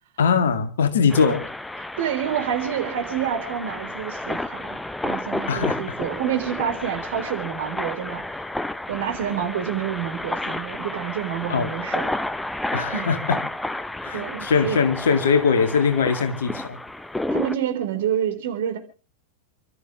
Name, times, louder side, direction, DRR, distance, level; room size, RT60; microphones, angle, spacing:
voice 1, 0.2-1.4 5.5-5.8 11.5-11.7 12.7-13.4 14.0-16.8, left 6 dB, 65° left, 2.2 m, -21 dB
sound 1, 1.1-17.6, left 1 dB, 5° left, 0.7 m, -31 dB
voice 2, 2.0-8.2 8.9-12.2 12.9-13.1 14.1-14.8 17.3-18.8, right 9 dB, 55° right, 3.8 m, -28 dB
29.5 x 13.5 x 3.2 m
figure-of-eight pair, 90°, 0 cm